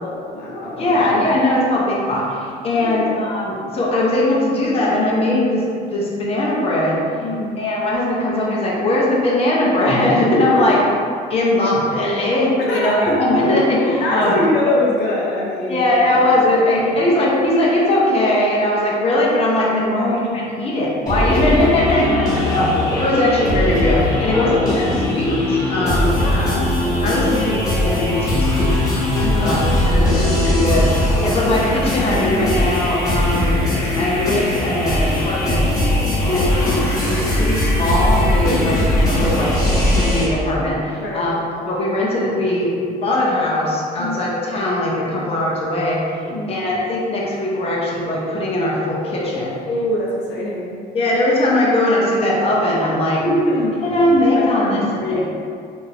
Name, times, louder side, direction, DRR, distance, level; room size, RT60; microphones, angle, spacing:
voice 1, 0.0-0.9 2.7-3.0 7.2-7.6 10.5-10.7 12.7-13.1 14.0-15.9 20.0-20.2 21.4-21.5 22.0-22.6 24.3-25.1 26.2-26.7 27.3-27.4 29.2-30.1 31.2-31.4 35.9-36.3 38.4-38.8 41.0-41.3 44.0-44.2 45.2-45.3 46.2-46.5 49.7-50.8 53.2-53.8 54.3-55.2, left 1 dB, 85° left, -4 dB, 0.6 m, -24 dB
voice 2, 0.8-7.0 7.6-10.8 11.3-14.3 15.7-22.1 22.5-22.7 23.0-24.8 25.1-26.2 26.5-26.6 27.0-28.8 29.1-33.6 34.0-35.7 36.2-38.8 39.1-39.6 39.9-41.3 41.7-42.7 43.0-46.0 46.5-49.6 50.9-53.2 53.8-55.2, left 1 dB, 35° left, -5 dB, 0.7 m, -19 dB
sound 1, 21.1-40.3, left 1 dB, 20° left, 1.2 m, -19 dB
3.2 x 2.6 x 2.8 m, 2.3 s
cardioid pair, 110°, 17 cm